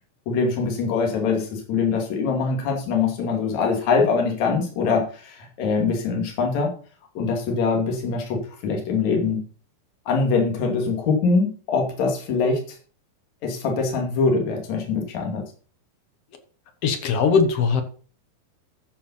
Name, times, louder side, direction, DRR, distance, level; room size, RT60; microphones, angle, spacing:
voice 1, 0.3-6.7 7.2-9.4 10.1-12.6 13.4-15.4, left 4 dB, 50° left, 1 dB, 3.6 m, -23 dB
voice 2, 16.8-17.8, left 5 dB, 70° left, 8 dB, 1.5 m, -20 dB
14.0 x 5.7 x 5.5 m, 0.41 s
omnidirectional pair, 4.4 m